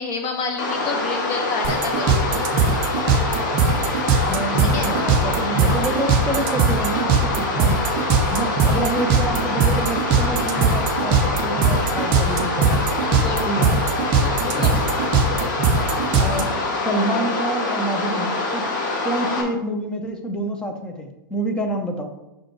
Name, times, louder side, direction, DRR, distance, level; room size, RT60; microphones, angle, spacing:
voice 1, 0.0-2.5 4.5-4.9 8.2-8.3 13.2-13.6 14.2-14.8, left 3 dB, 35° left, 3 dB, 1.3 m, -29 dB
sound 1, 0.6-19.4, left 3 dB, 60° left, 1.7 m, -25 dB
sound 2, 1.6-16.4, right 5 dB, 30° right, 0.6 m, -19 dB
voice 2, 4.3-7.8 8.3-12.8 13.4-13.7 14.5-14.8 16.1-16.5 16.7-18.6 19.0-22.1, right 1 dB, 5° left, 4 dB, 0.7 m, -27 dB
5.6 x 5.1 x 4.5 m, 0.93 s
hypercardioid pair, 160°, 12 cm